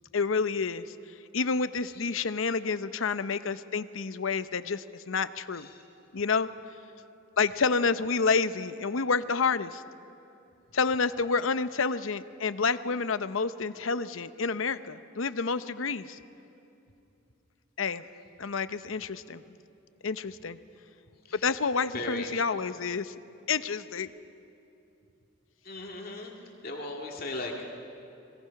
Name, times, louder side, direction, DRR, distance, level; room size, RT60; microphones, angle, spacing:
voice 1, 0.1-0.9 1.3-5.7 6.1-6.5 7.4-9.8 10.7-16.2 17.8-18.1 18.4-19.4 20.0-20.6 21.4-23.1 23.5-24.1, left 4 dB, 90° left, 13 dB, 0.8 m, -29 dB
voice 2, 21.9-22.3 25.6-26.3 26.6-27.7, left 2 dB, 50° left, 0 dB, 2.3 m, -37 dB
30.0 x 21.5 x 5.9 m, 2.7 s
head